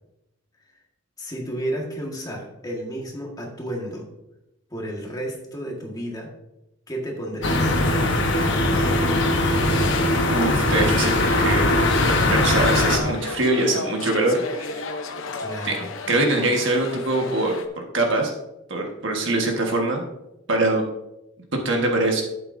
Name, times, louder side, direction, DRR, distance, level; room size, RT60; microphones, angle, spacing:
voice 1, 1.2-4.1 4.7-6.3 6.9-7.7 15.2-15.9, right 1 dB, 20° left, -1 dB, 1.7 m, -32 dB
sound 1, 7.4-13.0, left 1 dB, 60° left, 1.2 m, -20 dB
sound 2, 9.4-17.7, left 4 dB, 75° left, 0.8 m, -34 dB
voice 2, 10.3-11.7 12.1-15.0 15.6-15.8 16.1-17.6 17.9-18.3 18.7-20.0 20.5-20.8 21.6-22.2, right 2 dB, 65° right, 1 dB, 1.5 m, -23 dB
11.5 x 8.5 x 2.7 m, 0.92 s
head